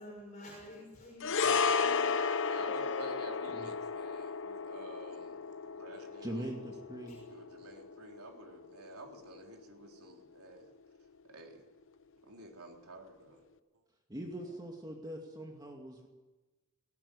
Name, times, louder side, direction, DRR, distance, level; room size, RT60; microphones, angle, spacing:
voice 1, 0.0-3.1 7.1-7.2 14.3-14.5, left 1 dB, 35° left, -2 dB, 5.6 m, -48 dB
sound 1, 1.2-9.7 9.9-10.1, left 5 dB, 65° left, 0.9 m, -34 dB
voice 2, 2.4-6.5 7.3-10.7 11.2-11.7 12.2-13.4 13.7-13.8, right 2 dB, 90° right, 2 dB, 3.7 m, -51 dB
voice 3, 6.2-7.2 14.1-16.1, right 1 dB, 20° right, 1 dB, 2.4 m, -42 dB
18.5 x 17.5 x 9.9 m, 1.2 s
head